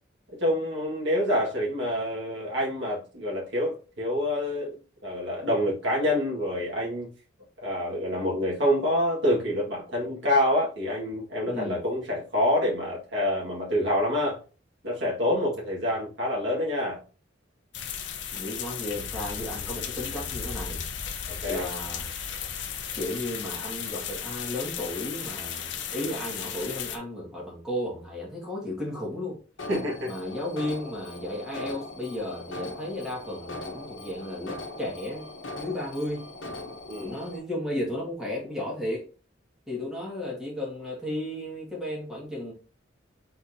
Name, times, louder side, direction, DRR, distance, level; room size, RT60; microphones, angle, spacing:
voice 1, 0.4-4.8 5.0-7.1 7.6-14.4 14.8-17.0 21.3-21.7 29.7-30.1 36.9-37.2, left 1 dB, 70° right, -4 dB, 1.8 m, -27 dB
voice 2, 11.5-11.8 18.3-20.9 21.5-22.1 22.9-29.4 30.0-35.3 35.6-36.3 37.0-39.1 39.7-42.5, left 1 dB, 5° right, -5 dB, 1.8 m, -34 dB
sound 1, 17.7-27.0, left 8 dB, 65° left, 0.7 m, -35 dB
Alarm, 29.6-37.4, left 2 dB, 80° left, 1.1 m, -40 dB
4.4 x 4.1 x 2.7 m, 0.35 s
head